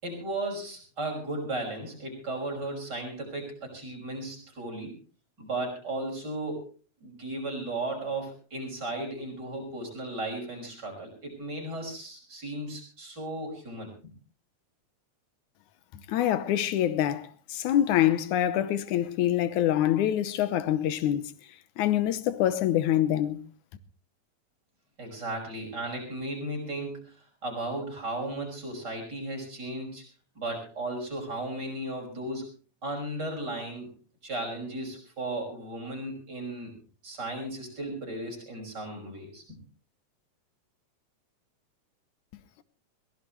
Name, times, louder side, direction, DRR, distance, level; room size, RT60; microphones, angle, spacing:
voice 1, 0.0-4.9 5.4-6.7 7.0-14.1 25.0-27.1 27.4-30.0 30.3-32.4 32.8-33.9 34.2-36.7 37.0-39.6, right 2 dB, 35° right, 6.3 m, -35 dB
voice 2, 16.1-21.3 21.8-23.4, left 12 dB, 85° left, 2.4 m, -25 dB
22.0 x 17.0 x 3.1 m
omnidirectional pair, 3.3 m